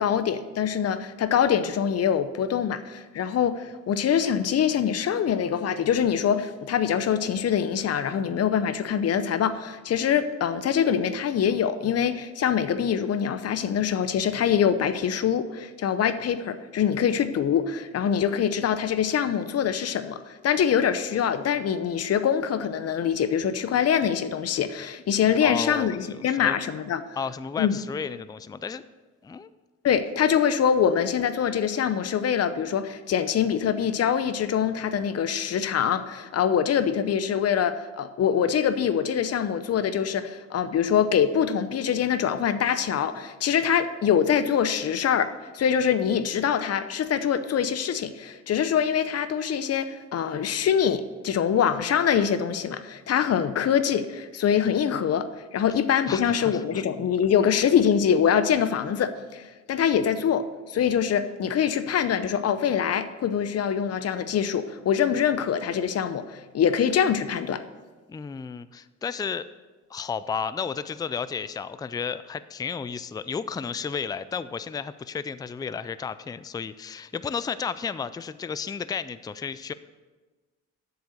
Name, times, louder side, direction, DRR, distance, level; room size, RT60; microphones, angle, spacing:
voice 1, 0.0-27.2 27.6-27.8 29.8-67.6, left 8 dB, 55° left, 12 dB, 0.7 m, -24 dB
voice 2, 25.4-26.6 27.2-28.8 29.2-29.5 56.1-56.8 68.1-69.5 69.9-79.7, left 6 dB, 15° left, 14 dB, 0.3 m, -33 dB
8.0 x 6.9 x 6.5 m, 1.3 s
cardioid pair, 90°, 30 cm